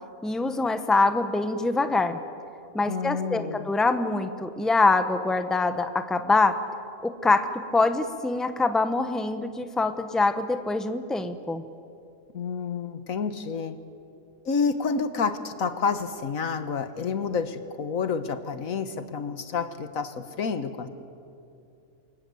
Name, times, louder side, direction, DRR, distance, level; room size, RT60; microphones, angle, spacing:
voice 1, 0.2-2.2 2.7-6.6 7.0-7.5 7.7-11.6, left 3 dB, ahead, 8 dB, 1.0 m, -24 dB
voice 2, 2.9-3.7 12.3-13.8 14.5-20.9, left 5 dB, 75° left, 10 dB, 1.8 m, -29 dB
29.5 x 24.5 x 7.9 m, 2.5 s
omnidirectional pair, 1.5 m